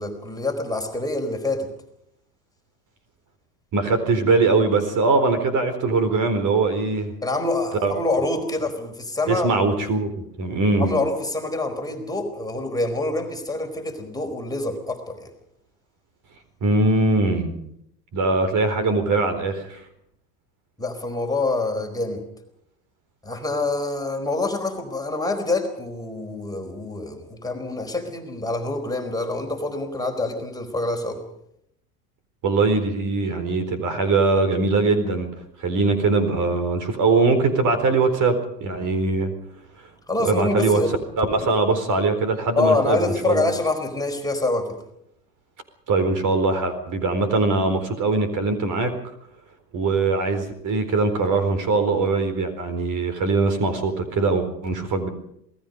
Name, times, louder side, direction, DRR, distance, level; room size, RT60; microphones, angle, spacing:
voice 1, 0.0-1.7 7.2-9.5 10.8-15.3 20.8-22.2 23.2-31.2 40.1-41.0 42.6-44.8, left 2 dB, 10° left, 2 dB, 4.4 m, -26 dB
voice 2, 3.7-7.1 7.8-7.9 9.3-10.1 10.4-10.9 16.6-17.5 18.1-19.8 32.4-35.3 35.6-39.3 40.2-40.8 41.2-43.4 45.9-48.9 49.7-55.1, right 3 dB, 40° right, 10 dB, 4.4 m, -21 dB
27.5 x 20.0 x 5.3 m, 0.75 s
hypercardioid pair, 95°, 47 cm